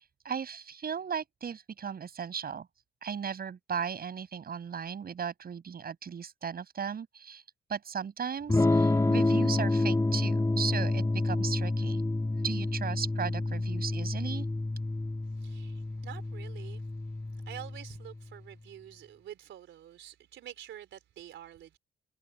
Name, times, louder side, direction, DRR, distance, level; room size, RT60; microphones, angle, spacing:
voice 1, 0.2-2.7 3.0-7.4 7.7-12.0 12.4-14.5, right 7 dB, 50° right, 7.4 m, -36 dB
Electric guitar / Strum, 8.5-18.3, left 2 dB, 15° left, 2.6 m, -29 dB
voice 2, 15.3-16.9 17.3-21.8, right 11 dB, 75° right, 3.9 m, -47 dB
cardioid pair, 90°, 20 cm